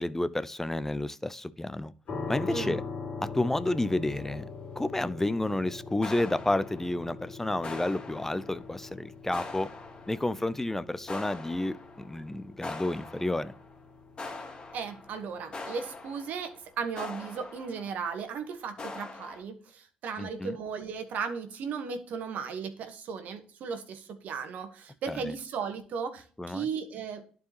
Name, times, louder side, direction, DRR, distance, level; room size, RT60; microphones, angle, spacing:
voice 1, 0.0-1.9 2.3-2.8 3.2-4.5 4.8-9.7 10.1-13.5 20.2-20.6 25.1-25.2 26.4-26.7, left 1 dB, 10° left, 0.5 m, -30 dB
sound 1, 2.1-16.9, left 4 dB, 55° left, 2.3 m, -43 dB
sound 2, 6.0-7.3 7.6-8.9 9.3-10.5 11.1-12.3 12.6-13.8 14.2-18.1 18.8-19.4, left 3 dB, 35° left, 2.3 m, -43 dB
voice 2, 14.7-27.4, right 6 dB, 65° right, 1.3 m, -36 dB
11.5 x 4.7 x 3.0 m
hypercardioid pair, 60°, 3 cm